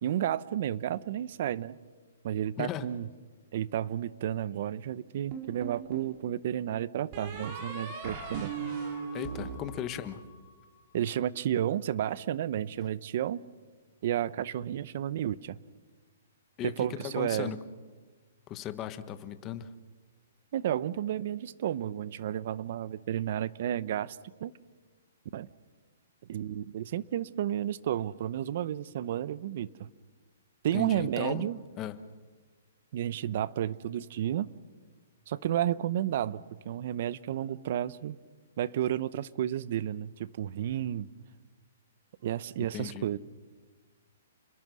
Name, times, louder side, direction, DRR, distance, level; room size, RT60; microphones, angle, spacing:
voice 1, 0.0-1.8 2.2-3.1 3.5-8.5 10.9-13.4 14.0-15.6 16.6-17.5 20.5-24.5 25.3-25.5 26.3-29.9 30.6-31.6 32.9-34.5 35.3-38.2 38.6-41.1 42.2-43.2, right 11 dB, 50° right, 19 dB, 0.8 m, -32 dB
voice 2, 2.6-2.9 9.1-10.2 16.6-17.6 18.5-19.7 30.7-31.4 31.8-32.0 42.6-43.1, left 11 dB, 20° left, 12 dB, 1.2 m, -37 dB
sound 1, 5.3-6.1 7.1-10.5, right 5 dB, 35° right, 5.4 m, -38 dB
30.0 x 21.5 x 6.3 m, 1.4 s
hypercardioid pair, 160°, 0 cm